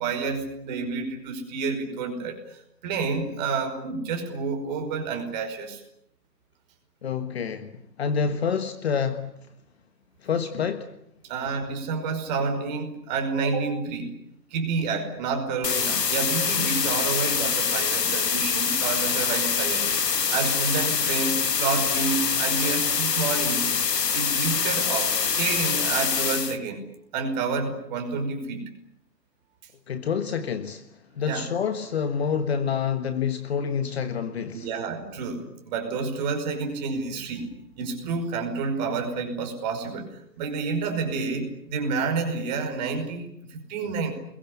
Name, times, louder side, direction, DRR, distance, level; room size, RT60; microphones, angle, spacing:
voice 1, 0.0-5.8 11.2-14.1 14.5-19.8 20.3-23.7 24.1-26.8 27.1-28.6 31.2-31.5 34.5-37.5 37.8-44.1, right 4 dB, 25° right, 5.4 m, -29 dB
voice 2, 7.0-7.7 8.0-9.3 10.2-10.9 29.9-30.8 31.1-34.7, left 6 dB, 40° left, 1.5 m, -27 dB
sound 1, 15.6-26.6, left 6 dB, 70° left, 2.1 m, -25 dB
29.0 x 22.0 x 8.5 m
hypercardioid pair, 155°, 50 cm